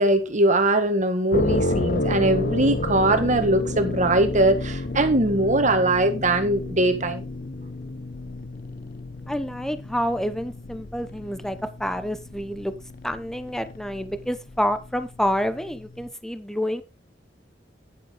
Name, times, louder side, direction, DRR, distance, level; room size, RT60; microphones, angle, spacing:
voice 1, 0.0-7.2, right 2 dB, 45° right, 1.7 m, -21 dB
sound 1, 1.3-16.1, left 2 dB, 50° left, 0.8 m, -31 dB
voice 2, 9.3-12.7 13.0-16.8, equal, 5° left, 0.8 m, -28 dB
9.9 x 9.7 x 3.9 m
head